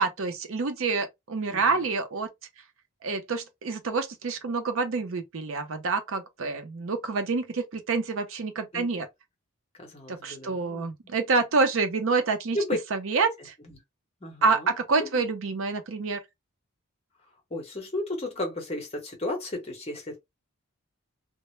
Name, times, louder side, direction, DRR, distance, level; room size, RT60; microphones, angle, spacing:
voice 1, 0.0-2.3 3.0-9.1 10.1-12.6 12.9-13.5 14.4-16.2, right 4 dB, 65° right, 0.5 m, -27 dB
voice 2, 1.5-1.9 8.7-8.9 9.8-10.9 12.5-12.8 13.7-13.8 14.2-14.7 15.0-15.1 17.5-20.2, left 1 dB, 30° left, 0.8 m, -33 dB
2.1 x 2.0 x 2.9 m
head